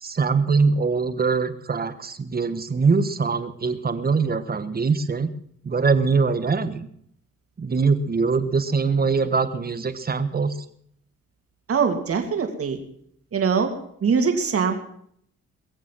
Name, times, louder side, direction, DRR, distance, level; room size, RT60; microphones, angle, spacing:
voice 1, 0.0-5.3 5.6-6.9 7.6-10.5, right 4 dB, 30° right, 12 dB, 1.3 m, -22 dB
voice 2, 11.7-12.8 13.3-13.7 14.0-14.8, right 6 dB, 50° right, 4 dB, 2.8 m, -22 dB
22.0 x 7.4 x 7.6 m, 0.69 s
cardioid pair, 90°, 30 cm